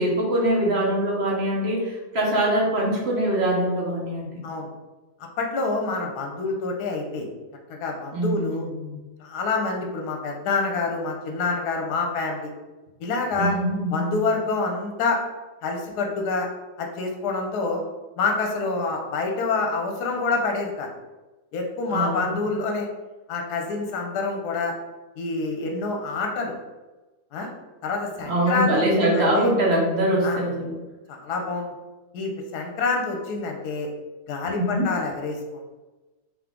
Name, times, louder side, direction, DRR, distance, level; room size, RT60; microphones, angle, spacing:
voice 1, 0.0-4.4 8.1-9.0 13.4-14.2 21.9-22.3 28.3-30.7 34.5-34.9, right 1 dB, 50° right, -2 dB, 0.9 m, -23 dB
voice 2, 5.4-7.3 7.7-8.7 9.2-12.5 13.0-13.6 13.9-15.2 15.6-16.5 16.8-17.8 18.2-20.9 21.5-22.9 23.3-24.7 25.2-26.5 27.3-27.5 27.8-29.5 30.2-30.4 31.1-31.7 32.1-33.9 34.3-35.4, left 3 dB, 80° left, 2 dB, 1.2 m, -27 dB
3.8 x 2.9 x 3.6 m, 1.1 s
omnidirectional pair, 1.7 m